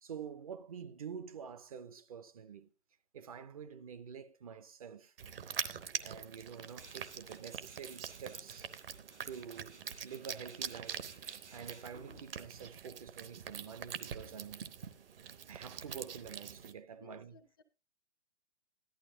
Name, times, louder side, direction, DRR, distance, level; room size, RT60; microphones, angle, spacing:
voice 1, 0.0-2.7 3.1-5.1 6.0-8.7 9.2-14.7 15.5-17.3, right 7 dB, 35° right, 0.5 m, -48 dB
sound 1, 5.2-16.7, right 8 dB, 55° right, 0.9 m, -44 dB
Tools, 6.7-15.5, right 3 dB, 90° right, 3.0 m, -60 dB
voice 2, 16.9-17.6, left 6 dB, 20° left, 0.4 m, -60 dB
14.5 x 11.5 x 2.7 m
figure-of-eight pair, 130°, 34 cm